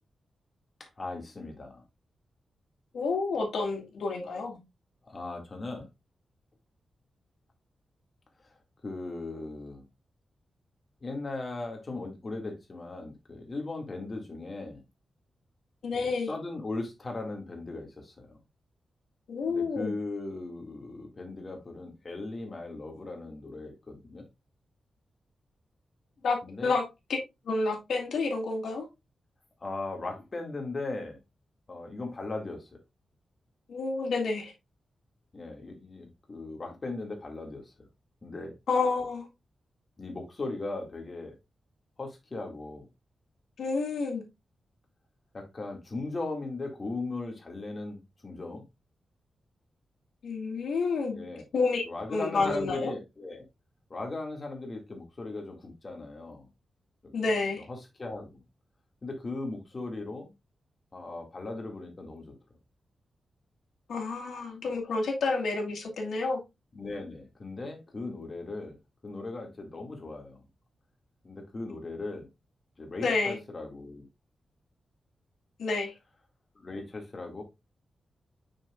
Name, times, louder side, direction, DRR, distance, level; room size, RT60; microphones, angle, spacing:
voice 1, 0.8-1.8 5.1-5.9 8.8-9.8 11.0-14.8 15.9-18.4 19.4-24.2 26.4-26.7 29.6-31.2 31.7-32.7 35.3-37.7 38.2-38.5 40.0-41.3 42.0-42.9 45.3-48.6 51.1-51.4 51.8-53.4 53.9-56.5 57.7-58.4 59.0-60.3 60.9-62.4 66.7-68.8 69.0-70.4 71.2-72.3 72.8-74.1 76.6-77.4, left 2 dB, 30° left, 2.0 m, -38 dB
voice 2, 2.9-4.6 15.8-16.3 19.3-20.0 26.2-27.2 27.5-28.9 33.7-34.5 38.7-39.3 43.6-44.2 50.2-51.3 51.5-51.8 52.1-52.9 57.1-57.7 63.9-66.4 73.0-73.4 75.6-75.9, left 3 dB, 85° left, 2.0 m, -29 dB
6.7 x 5.9 x 2.4 m
wide cardioid pair, 150°, 0 cm